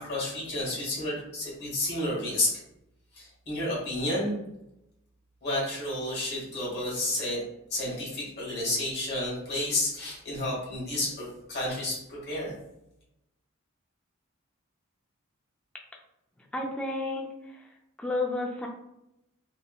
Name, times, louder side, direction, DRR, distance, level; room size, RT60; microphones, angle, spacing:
voice 1, 0.0-2.6 3.1-4.3 5.4-7.4 7.7-12.5, left 1 dB, 50° left, -6 dB, 1.2 m, -31 dB
voice 2, 16.5-17.7 18.0-18.7, left 2 dB, 5° left, -1 dB, 0.3 m, -31 dB
2.9 x 2.1 x 2.3 m, 0.85 s
head